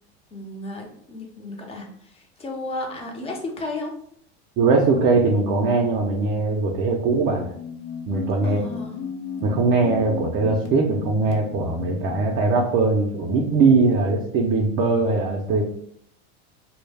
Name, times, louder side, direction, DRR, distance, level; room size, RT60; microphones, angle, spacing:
voice 1, 0.3-3.9 5.1-5.2 8.4-9.0, left 2 dB, 20° left, 2 dB, 0.5 m, -34 dB
voice 2, 4.6-7.5 8.1-8.6 9.4-15.6, right 3 dB, 35° right, 0 dB, 0.4 m, -20 dB
sound 1, 7.2-12.4, left 7 dB, 70° left, 0.7 m, -35 dB
2.2 x 2.0 x 3.3 m, 0.66 s
supercardioid pair, 115°, 32 cm